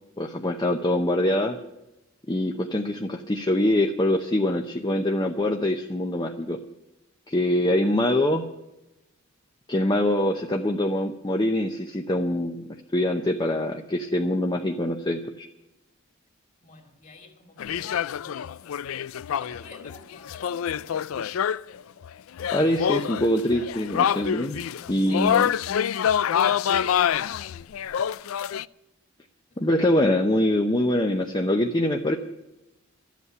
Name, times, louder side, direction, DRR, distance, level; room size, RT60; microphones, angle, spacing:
voice 1, 0.2-1.6 2.3-6.6 7.3-8.4 9.7-12.6 12.9-15.5 22.5-24.6 24.9-25.5 29.6-32.2, left 1 dB, 20° left, 3 dB, 0.7 m, -24 dB
voice 2, 16.6-18.9 19.3-21.1 24.8-25.0 26.7-27.7 29.5-29.7, left 3 dB, 40° left, 5 dB, 2.8 m, -50 dB
sound 1, 17.6-21.7 22.0-22.1 22.4-28.6, left 9 dB, 80° left, 0.4 m, -26 dB
13.0 x 8.3 x 9.4 m, 0.96 s
head